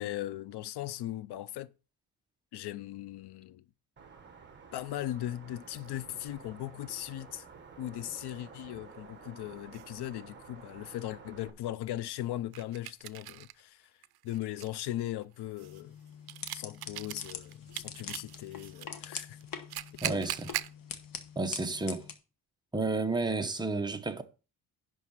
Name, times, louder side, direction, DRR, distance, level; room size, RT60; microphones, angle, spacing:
voice 1, 0.0-1.7 2.5-3.6 4.7-7.5 7.8-13.9 14.2-15.9 16.5-19.4 19.7-20.2, left 13 dB, 80° left, 0.6 m, -38 dB
sound 1, 4.0-11.5, right 5 dB, 30° right, 1.5 m, -51 dB
sound 2, 5.8-6.4 8.9-9.0 9.7-9.9 12.5-13.6 14.0-18.9 19.4-20.7, right 14 dB, 70° right, 0.5 m, -41 dB
sound 3, 15.6-22.1, left 7 dB, 60° left, 1.2 m, -44 dB
voice 2, 20.0-20.5 21.4-22.0 22.7-24.2, right 3 dB, 10° right, 0.8 m, -31 dB
11.0 x 3.7 x 7.2 m
wide cardioid pair, 165°, 39 cm